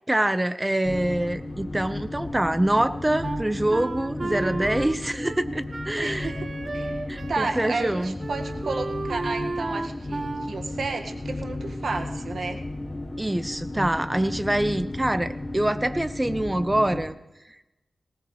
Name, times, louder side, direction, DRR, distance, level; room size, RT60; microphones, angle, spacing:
voice 1, 0.1-6.3 7.1-8.1 13.2-17.1, right 1 dB, 15° right, 11 dB, 1.0 m, -25 dB
sound 1, 0.8-17.0, left 2 dB, 25° left, 1.5 m, -34 dB
Wind instrument woodwind instrument, 3.2-7.5 7.7-7.9 8.2-10.5, right 3 dB, 45° right, 1.0 m, -33 dB
voice 2, 6.0-7.0 7.3-12.6, right 3 dB, 80° right, 4 dB, 1.7 m, -32 dB
20.0 x 18.5 x 3.2 m, 0.97 s
cardioid pair, 65°, 0 cm